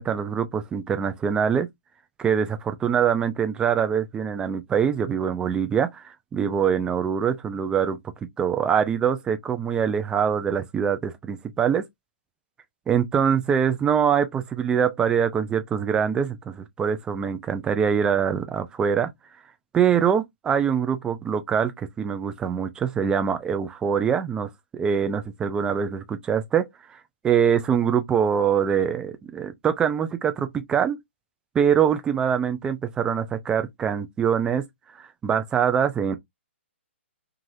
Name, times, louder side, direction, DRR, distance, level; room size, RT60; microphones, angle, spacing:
voice 1, 0.0-1.7 2.2-8.0 8.4-11.8 12.9-19.1 19.7-26.7 27.2-31.0 31.5-34.6 35.0-36.2, right 7 dB, 10° right, 0.4 m, -24 dB
3.2 x 2.4 x 2.6 m
figure-of-eight pair, 130°, 7 cm